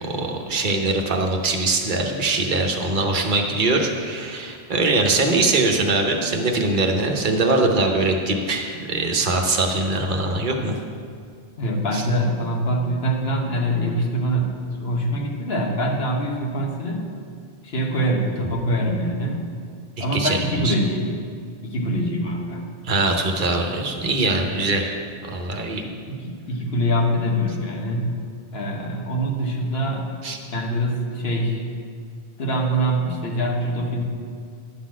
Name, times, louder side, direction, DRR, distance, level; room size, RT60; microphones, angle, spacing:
voice 1, 0.0-10.7 11.9-12.0 20.0-20.4 20.6-20.7 22.8-25.0 25.2-25.9 30.2-30.4, right 2 dB, 50° right, 2 dB, 1.0 m, -22 dB
voice 2, 11.6-17.1 17.6-19.5 20.0-21.1 21.6-22.6 25.8-28.2 28.5-30.1 30.5-31.7 32.4-34.0, equal, 65° left, 0 dB, 1.3 m, -24 dB
10.5 x 4.0 x 7.3 m, 2.2 s
omnidirectional pair, 1.2 m